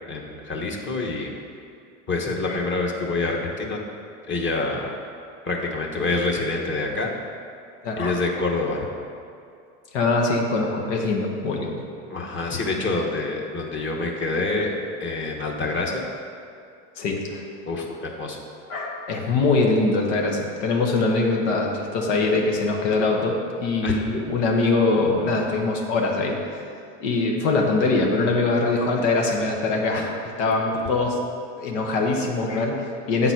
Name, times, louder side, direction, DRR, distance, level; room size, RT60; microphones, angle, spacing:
voice 1, 0.1-1.4 2.1-3.8 4.3-5.0 5.5-7.1 8.0-8.9 12.1-16.1 17.7-18.4 23.8-23.9, left 3 dB, 35° left, 0 dB, 1.2 m, -26 dB
voice 2, 7.8-8.2 9.9-11.8 17.0-17.4 18.7-26.4 27.0-30.1 30.4-31.2 31.6-33.3, left 3 dB, 85° left, 0 dB, 1.1 m, -23 dB
7.9 x 4.0 x 5.7 m, 2.5 s
supercardioid pair, 105°, 36 cm